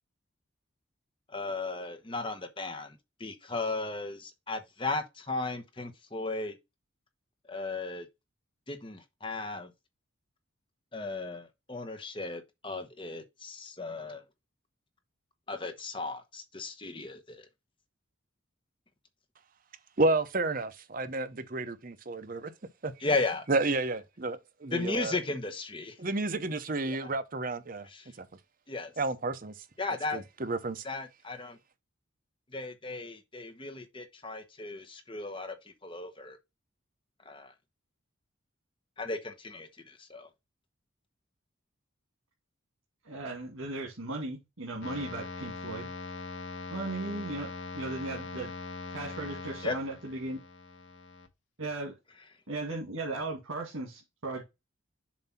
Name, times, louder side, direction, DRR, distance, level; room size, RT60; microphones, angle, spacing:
voice 1, 1.3-6.6 7.5-8.1 8.7-9.7 10.9-14.2 15.5-17.5 23.0-23.5 24.7-26.0 26.9-27.0 27.8-28.1 28.7-28.9 29.8-30.2 30.8-31.6 32.5-35.6 35.8-36.4 37.2-37.5 39.0-40.3 49.6-49.8, left 3 dB, 25° left, 1.0 m, -36 dB
voice 2, 20.0-22.5 22.8-22.9 23.5-25.2 26.0-27.9 28.2-28.3 29.0-29.5 30.1-30.8, right 2 dB, 40° right, 0.7 m, -31 dB
voice 3, 43.0-45.9 46.7-48.5 48.9-50.4 51.6-51.9 52.5-54.4, right 2 dB, 85° right, 2.0 m, -37 dB
sound 1, 44.8-51.3, left 3 dB, 65° left, 1.2 m, -41 dB
7.2 x 2.8 x 5.7 m
head